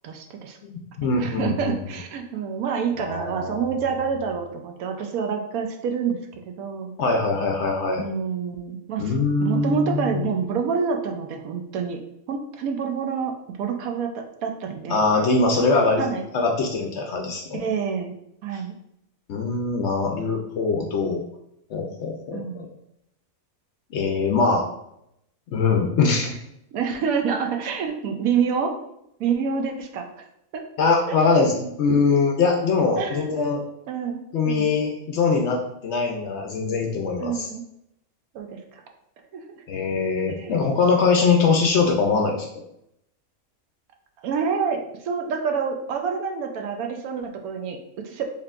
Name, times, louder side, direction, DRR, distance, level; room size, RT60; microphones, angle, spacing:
voice 1, 0.0-0.6 1.0-6.2 6.4-6.9 8.0-9.1 9.4-12.0 12.3-15.0 15.5-15.7 16.0-16.3 17.5-18.1 18.4-18.7 22.3-22.7 26.7-28.8 29.2-30.1 30.5-30.6 31.3-31.5 33.0-33.3 33.9-34.7 37.2-37.7 38.3-38.6 39.3-39.4 40.3-40.6 44.2-48.2, right 6 dB, 80° right, 4 dB, 1.0 m, -27 dB
voice 2, 0.7-1.7 3.0-3.6 7.0-8.0 9.0-10.3 14.9-16.0 16.3-17.6 19.3-21.2 21.7-22.7 23.9-24.7 25.5-26.3 30.8-33.6 34.3-37.5 39.7-42.6, left 4 dB, 65° left, 1 dB, 0.7 m, -22 dB
4.3 x 3.3 x 2.4 m, 0.79 s
omnidirectional pair, 1.5 m